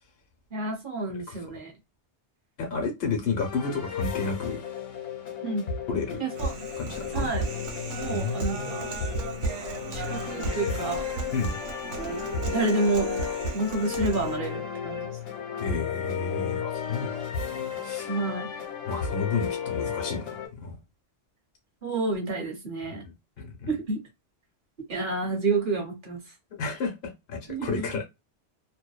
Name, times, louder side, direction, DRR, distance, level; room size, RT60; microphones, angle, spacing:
voice 1, 0.5-1.7 5.4-5.7 6.2-6.5 7.1-7.5 7.9-8.6 9.9-11.0 12.0-13.3 13.5-15.2 18.1-18.5 21.8-23.1 23.7-24.0 24.9-26.3 27.5-27.9, right 3 dB, 50° right, 0.9 m, -29 dB
voice 2, 2.6-4.6 5.9-6.2 6.8-7.3 8.0-8.8 11.3-11.6 15.6-17.5 17.8-18.1 18.8-20.3 20.6-20.8 22.9-23.0 23.4-23.7 26.6-28.0, left 4 dB, 60° left, 1.0 m, -31 dB
sound 1, 3.4-20.5, left 7 dB, 80° left, 1.1 m, -34 dB
Human voice, 6.4-14.4, right 3 dB, 75° right, 1.0 m, -34 dB
2.6 x 2.1 x 2.2 m
omnidirectional pair, 1.2 m